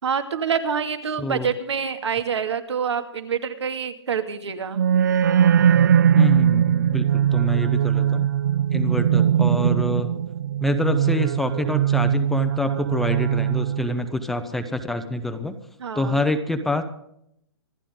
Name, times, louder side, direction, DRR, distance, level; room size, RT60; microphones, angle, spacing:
voice 1, 0.0-4.8 15.8-16.2, right 7 dB, 80° right, 7 dB, 2.4 m, -26 dB
voice 2, 1.2-1.5 6.1-8.3 8.7-10.2 10.6-15.5 15.9-16.8, left 2 dB, ahead, 7 dB, 0.6 m, -26 dB
sound 1, 4.7-14.1, right 9 dB, 45° right, 0.4 m, -20 dB
26.5 x 10.5 x 3.8 m, 0.73 s
hypercardioid pair, 170°, 14 cm